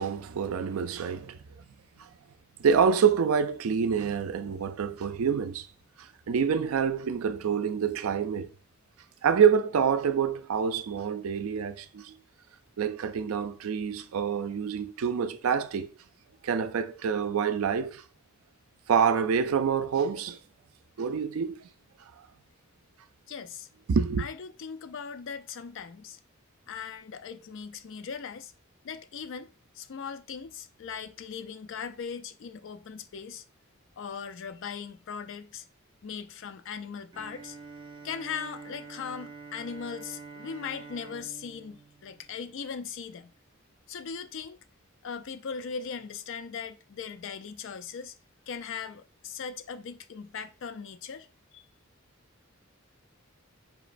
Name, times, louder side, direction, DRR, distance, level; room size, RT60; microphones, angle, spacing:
voice 1, 0.0-1.4 2.0-2.1 2.6-5.7 6.0-8.5 9.2-12.2 12.8-15.9 16.4-18.0 18.9-20.4 21.0-21.6 23.9-24.3, right 7 dB, 80° right, 0.4 m, -27 dB
voice 2, 23.3-23.7 24.2-26.2 26.7-28.5 28.8-29.5 29.7-33.4 34.0-35.6 36.0-37.6 38.0-43.3 43.9-44.6 45.0-48.1 48.5-51.3 51.5-51.6, left 6 dB, 60° left, 0.4 m, -39 dB
Bowed string instrument, 37.1-43.0, right 4 dB, 20° right, 0.6 m, -47 dB
4.9 x 3.0 x 2.5 m
head